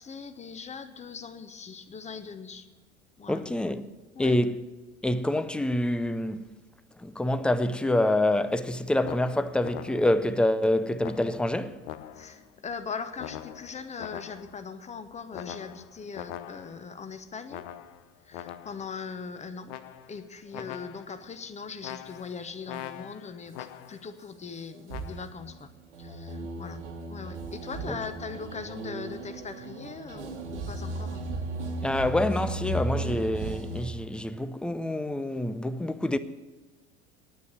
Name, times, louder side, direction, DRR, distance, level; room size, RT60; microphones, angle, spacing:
voice 1, 0.0-2.7 3.2-3.4 4.1-4.4 12.1-17.6 18.2-19.8 20.1-25.7 26.0-26.8 27.1-31.3, left 5 dB, 20° left, 1.0 m, -40 dB
voice 2, 3.3-3.9 4.2-4.6 5.0-6.4 7.0-11.8 27.9-28.0 31.8-36.2, left 1 dB, 5° left, 0.4 m, -26 dB
sound 1, 9.0-10.3 11.0-12.5 13.2-14.7 15.3-16.9 17.5-18.9 19.7-20.3 20.5-21.3 21.8-24.1 24.9-25.2, left 12 dB, 50° left, 0.8 m, -43 dB
sound 2, 24.9-33.9, right 1 dB, 75° right, 1.8 m, -35 dB
9.6 x 9.5 x 8.1 m
figure-of-eight pair, 75°, 35 cm